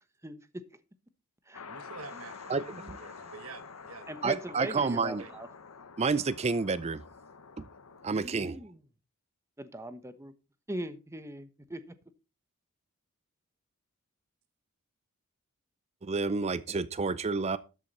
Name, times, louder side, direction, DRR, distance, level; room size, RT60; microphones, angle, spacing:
sound 1, 1.5-8.2, left 5 dB, 80° left, 1.1 m, -48 dB
voice 1, 1.7-5.3, right 4 dB, 70° right, 1.4 m, -49 dB
voice 2, 2.5-3.0 4.2-5.2 6.0-7.0 8.0-8.6 16.0-17.6, right 4 dB, 30° right, 0.4 m, -29 dB
voice 3, 4.1-5.5 8.1-8.8 9.6-10.3 10.7-11.9, right 1 dB, 15° right, 1.0 m, -40 dB
13.0 x 8.4 x 4.2 m
head